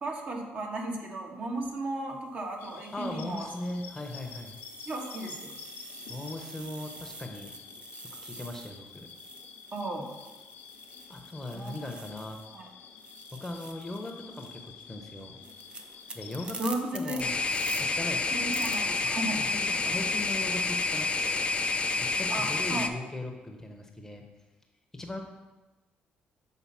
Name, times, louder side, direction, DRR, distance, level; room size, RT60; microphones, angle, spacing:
voice 1, 0.0-3.5 4.9-5.5 9.7-10.1 11.5-11.7 12.5-12.7 16.6-17.2 18.3-19.4 19.7-19.9 22.3-22.9, right 2 dB, 45° right, 0 dB, 1.4 m, -35 dB
sound 1, 1.4-1.7 2.4-12.6 12.9-17.8 18.5-18.8, right 3 dB, 30° right, 0.7 m, -47 dB
sound 2, 2.6-16.6, left 7 dB, 90° left, 0.7 m, -49 dB
voice 2, 2.9-4.5 6.1-7.5 8.2-9.1 11.1-12.4 13.4-15.4 16.1-17.4 17.8-18.4 19.4-21.5 22.0-24.2 24.9-25.2, left 1 dB, 15° left, 3 dB, 0.9 m, -39 dB
sound 3, 17.2-22.9, left 3 dB, 35° left, 0.5 m, -29 dB
7.3 x 4.0 x 5.6 m, 1.1 s
cardioid pair, 100°, 4 cm